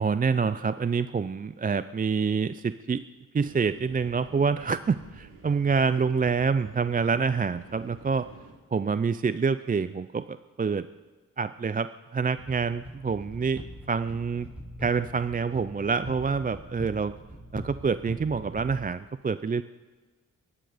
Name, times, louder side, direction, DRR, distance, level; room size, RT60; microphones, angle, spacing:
voice 1, 0.0-3.0 3.3-8.3 8.7-10.9 11.4-14.5 14.8-17.1 17.5-19.6, right 5 dB, 25° right, 14 dB, 0.5 m, -27 dB
sound 1, 3.4-8.5, right 3 dB, 85° right, 3.3 m, -50 dB
sound 2, 12.4-18.8, equal, 5° right, 6.8 m, -42 dB
23.5 x 10.0 x 5.1 m, 1.3 s
cardioid pair, 65°, 32 cm